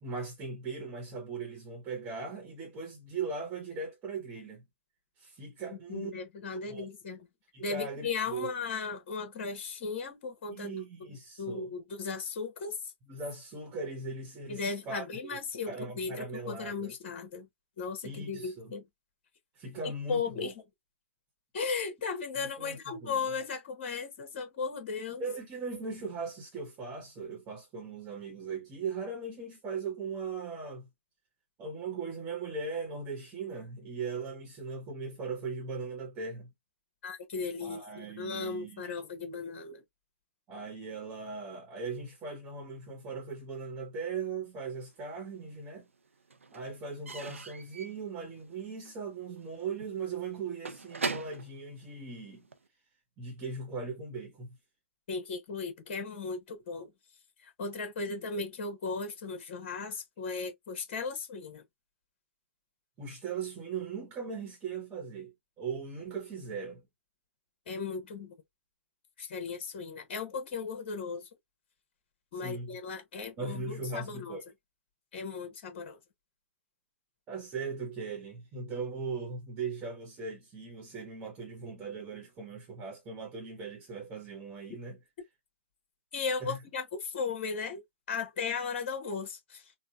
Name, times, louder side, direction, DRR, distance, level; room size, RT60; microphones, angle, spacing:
voice 1, 0.0-4.6 5.2-6.1 6.7-6.9 7.5-8.5 10.5-11.7 13.1-15.1 15.7-16.9 18.0-18.7 19.5-20.5 22.4-23.2 25.2-30.9 31.6-36.5 37.6-38.8 40.5-45.9 46.5-52.4 53.2-54.6 63.0-65.3 65.6-66.8 72.3-72.8 73.4-74.4 77.3-85.0 86.4-86.6, right 4 dB, 25° right, 1.1 m, -39 dB
voice 2, 5.7-7.3 7.6-10.7 11.4-12.9 14.5-15.7 16.0-17.5 17.8-18.8 19.8-20.5 21.5-25.2 37.0-39.8 55.1-56.9 57.4-61.6 67.7-68.3 69.2-71.3 72.3-74.4 75.1-76.0 86.1-89.7, left 5 dB, 45° left, 1.0 m, -36 dB
Slam / Squeak / Wood, 44.8-45.6 45.9-52.7, right 4 dB, 85° right, 0.5 m, -42 dB
3.9 x 2.1 x 2.3 m
figure-of-eight pair, 125°, 7 cm